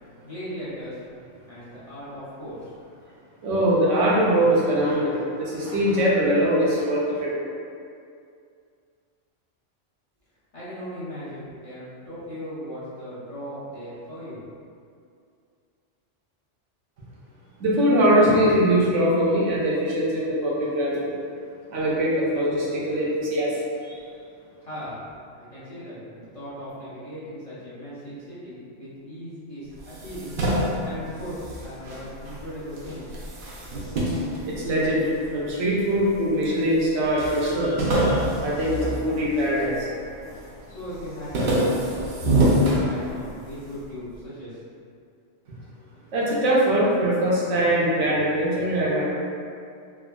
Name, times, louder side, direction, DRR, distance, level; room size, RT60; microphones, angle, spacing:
voice 1, 0.2-1.0 1.4-2.7 10.5-14.4 24.6-30.3 30.8-33.2 40.7-44.6, equal, 35° left, -12 dB, 0.6 m, -38 dB
voice 2, 3.4-7.3 17.6-21.1 21.7-23.6 23.8-24.0 34.4-39.9 46.1-49.0, equal, 75° right, -6 dB, 1.0 m, -22 dB
sound 1, 29.8-32.4 32.7-35.3 35.9-36.5 36.8-36.9 37.2-39.8 40.2-40.6 40.9-43.5, right 1 dB, 60° right, 0.6 m, -25 dB
3.3 x 2.0 x 2.2 m, 2.4 s
omnidirectional pair, 1.3 m